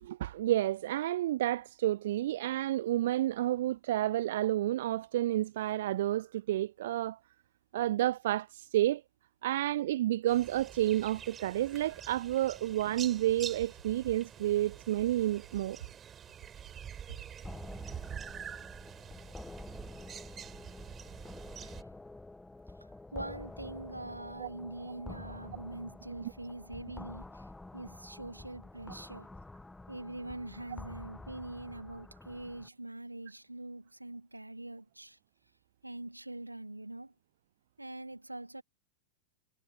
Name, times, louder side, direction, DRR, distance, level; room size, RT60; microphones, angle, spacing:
voice 1, 0.0-7.2 7.7-9.0 9.4-15.8 24.4-24.5, right 14 dB, 55° right, 0.3 m, -30 dB
sound 1, 10.3-21.8, right 8 dB, 25° right, 4.5 m, -46 dB
sound 2, 17.4-32.7, left 2 dB, 5° left, 1.3 m, -49 dB
voice 2, 23.1-27.4 27.7-29.3 29.9-35.2 35.8-37.1 37.8-38.6, right 1 dB, 85° right, 1.8 m, -43 dB
figure-of-eight pair, 90°, 0 cm